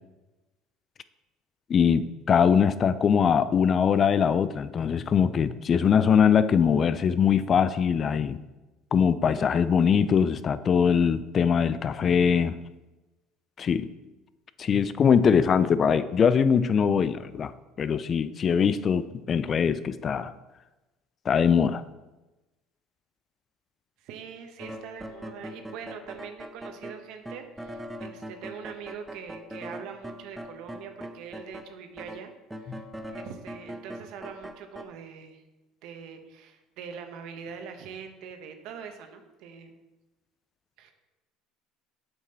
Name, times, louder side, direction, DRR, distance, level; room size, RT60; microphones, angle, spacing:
voice 1, 1.7-8.4 8.9-12.6 13.6-13.9 14.6-17.5 17.8-20.3 21.3-21.8 32.7-32.8, left 7 dB, 40° left, 14 dB, 0.4 m, -22 dB
voice 2, 24.0-35.4 35.8-39.7 40.8-40.9, right 7 dB, 70° right, 6 dB, 1.0 m, -43 dB
sound 1, 24.6-31.7 32.0-34.8, equal, 5° right, 0.7 m, -41 dB
7.7 x 6.0 x 4.2 m, 1.1 s
supercardioid pair, 90°, 0 cm